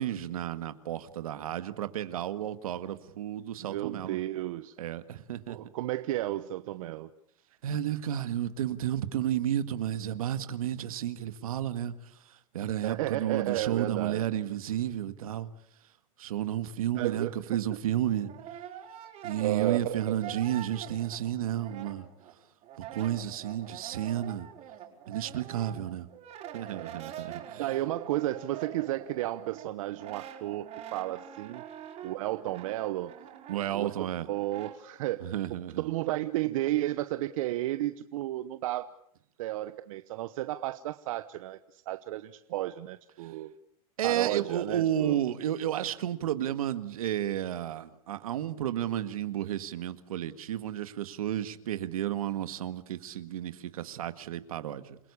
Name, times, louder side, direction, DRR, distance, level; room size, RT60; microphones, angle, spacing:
voice 1, 0.0-4.2 4.8-5.6 7.6-15.5 16.2-18.3 19.2-22.1 22.8-24.5 25.1-26.1 26.5-27.8 33.5-34.3 35.2-35.9 43.2-43.3 44.0-55.0, right 11 dB, 85° right, 12 dB, 1.8 m, -32 dB
voice 2, 3.6-4.8 5.5-7.1 12.8-14.3 16.9-17.3 19.4-20.2 26.7-27.0 27.6-31.6 32.0-33.1 33.7-35.3 35.8-38.9 39.4-43.5 44.0-45.2, right 15 dB, 70° right, 12 dB, 1.0 m, -33 dB
Brass instrument, 17.9-22.3 22.6-34.8, right 10 dB, 40° right, 5.1 m, -45 dB
28.5 x 17.5 x 8.5 m, 0.71 s
supercardioid pair, 130°, 18 cm